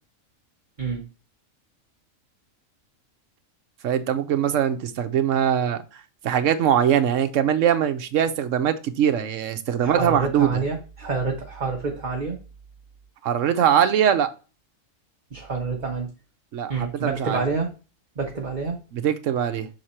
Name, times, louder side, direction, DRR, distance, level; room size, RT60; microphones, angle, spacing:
voice 1, 3.8-5.8 6.2-10.6 13.2-14.3 16.5-17.4 18.9-19.7, right 9 dB, 70° right, 1.1 m, -22 dB
voice 2, 9.8-12.4 15.3-16.1 16.7-17.7 18.2-18.8, right 4 dB, 35° right, 1.2 m, -27 dB
6.4 x 4.0 x 4.3 m
omnidirectional pair, 1.4 m